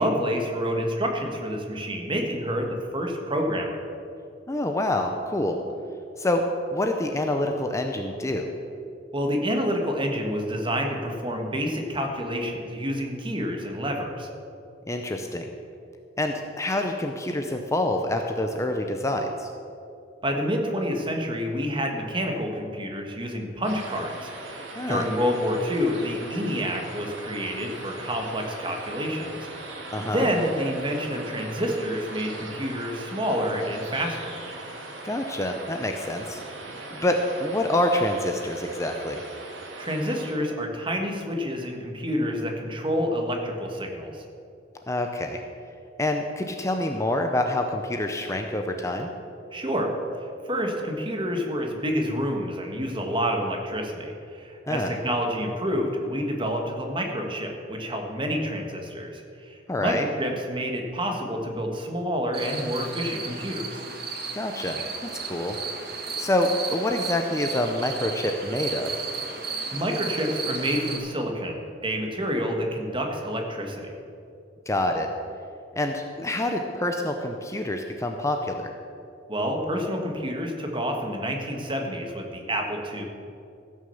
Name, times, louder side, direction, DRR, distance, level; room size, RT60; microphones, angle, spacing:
voice 1, 0.0-3.8 9.1-14.3 20.2-34.3 39.8-44.2 49.5-49.9 50.5-59.9 60.2-63.8 69.7-73.9 79.3-83.0, equal, 25° right, 2 dB, 1.6 m, -28 dB
voice 2, 4.5-5.6 6.2-6.4 6.7-8.5 14.9-15.4 16.2-19.5 24.8-25.1 29.9-30.3 35.0-36.4 36.9-39.2 44.9-45.4 46.0-49.1 54.7-55.0 59.7-60.1 64.4-65.6 66.2-68.9 74.7-75.1 75.8-78.7, left 1 dB, 15° left, 4 dB, 0.6 m, -27 dB
sound 1, 23.6-40.3, right 2 dB, 85° right, 2.0 m, -40 dB
sound 2, 62.3-71.0, right 4 dB, 55° right, 1.6 m, -34 dB
15.0 x 6.4 x 7.0 m, 2.6 s
head